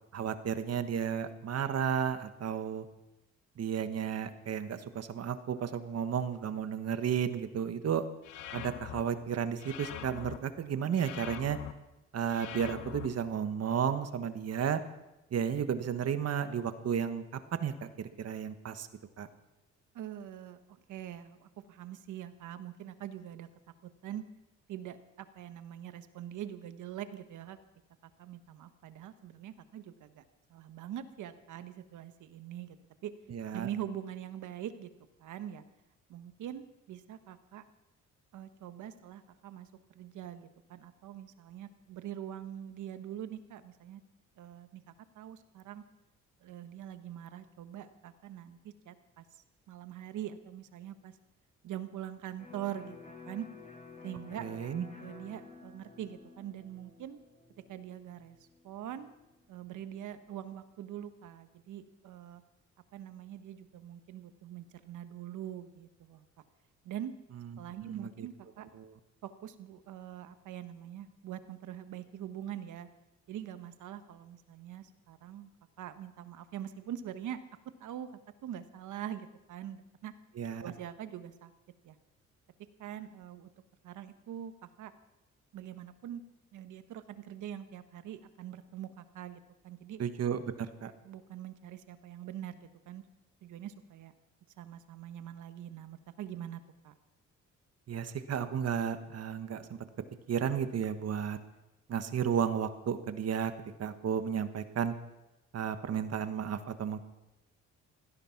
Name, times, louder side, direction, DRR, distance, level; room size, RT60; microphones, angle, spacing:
voice 1, 0.1-2.9 3.6-8.0 8.5-11.6 12.1-14.8 15.3-17.2 17.6-18.9 19.2-19.3 33.3-33.7 54.4-54.8 67.8-68.3 68.7-68.9 80.4-80.7 90.0-90.9 97.9-99.8 100.3-101.4 101.9-103.5 103.8-104.9 105.5-107.1, right 8 dB, 55° right, 10 dB, 1.3 m, -33 dB
sound 1, 8.2-9.0 9.6-10.4 10.9-11.7 12.3-13.1, left 11 dB, 85° left, 1.2 m, -43 dB
voice 2, 19.9-23.5 23.8-24.2 24.7-27.6 28.2-30.2 30.5-32.8 33.0-33.1 33.5-34.9 35.2-35.6 36.1-37.6 38.3-39.7 39.9-44.0 44.4-45.8 46.4-49.2 49.7-51.1 51.6-53.0 53.2-53.5 54.0-54.5 55.0-57.2 57.7-58.4 58.6-59.1 59.5-62.4 62.9-66.2 66.8-67.1 67.6-68.7 69.2-72.9 73.3-75.5 75.8-77.4 77.8-78.1 78.4-80.1 80.6-81.5 81.8-82.0 82.8-83.5 83.8-84.9 85.5-86.2 86.5-90.0 91.0-93.0 93.4-94.1 94.6-96.9, right 10 dB, 80° right, 10 dB, 1.3 m, -43 dB
Electric guitar, 52.4-60.0, left 4 dB, 25° left, 7.0 m, -52 dB
16.5 x 14.0 x 5.9 m, 0.98 s
cardioid pair, 90°, 30 cm